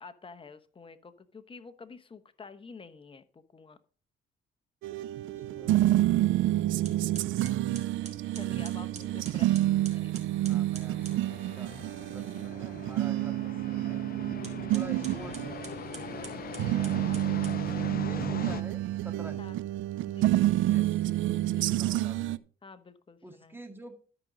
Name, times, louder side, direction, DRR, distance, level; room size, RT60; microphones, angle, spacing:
voice 1, 0.0-3.8 5.3-5.7 6.3-6.6 8.3-10.1 12.2-12.5 14.2-14.7 16.1-16.8 19.4-19.6 20.1-20.4 21.4-21.7 22.6-23.6, left 4 dB, 25° left, 10 dB, 1.0 m, -50 dB
sound 1, 4.8-22.4, right 14 dB, 75° right, 0.4 m, -29 dB
voice 2, 5.4-6.5 8.8-9.1 9.9-10.0 10.4-14.0 14.7-15.8 16.6-17.1 17.7-19.5 20.7-21.0 21.7-22.4 23.2-23.9, right 1 dB, 10° right, 5 dB, 2.0 m, -48 dB
sound 2, 6.8-11.2 14.3-18.0, right 4 dB, 35° right, 2.9 m, -49 dB
sound 3, 8.0-18.6, left 8 dB, 50° left, 0.7 m, -43 dB
13.0 x 5.3 x 5.1 m, 0.41 s
cardioid pair, 90°, 20 cm